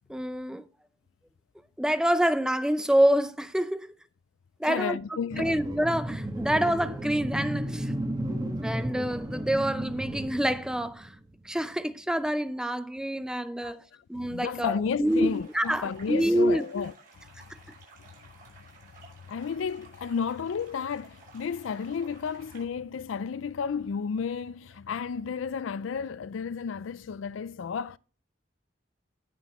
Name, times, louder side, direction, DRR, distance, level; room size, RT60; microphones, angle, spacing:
voice 1, 0.1-0.6 1.8-3.9 4.6-5.0 5.4-7.9 8.6-11.1 11.4-13.8 14.1-16.6 17.5-17.6, right 1 dB, 5° right, 0.5 m, -27 dB
voice 2, 4.6-5.6 13.6-13.7 14.2-16.9 19.3-28.0, left 6 dB, 85° left, 0.4 m, -32 dB
sound 1, 5.3-11.5, right 1 dB, 20° right, 1.5 m, -34 dB
sound 2, 15.0-22.6, right 3 dB, 45° right, 6.0 m, -54 dB
18.0 x 6.2 x 3.0 m
head